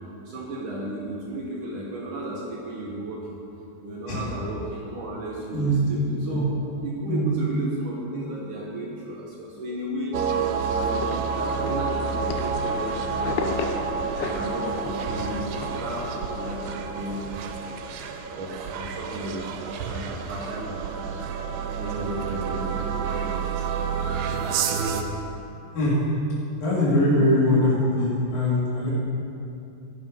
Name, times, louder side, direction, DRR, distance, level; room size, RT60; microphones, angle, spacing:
voice 1, 0.2-3.4 3.8-6.5 6.8-10.2 10.7-13.8 14.3-17.5 18.3-21.2 21.8-23.7, right 1 dB, 60° right, -3 dB, 2.6 m, -34 dB
sound 1, 10.1-25.0, right 5 dB, 75° right, 2.2 m, -29 dB
sound 2, 10.8-12.8 13.1-15.7, left 6 dB, 80° left, 2.7 m, -34 dB
voice 2, 26.6-28.9, left 1 dB, 60° left, -8 dB, 5.3 m, -22 dB
13.0 x 11.5 x 5.5 m, 2.7 s
omnidirectional pair, 4.7 m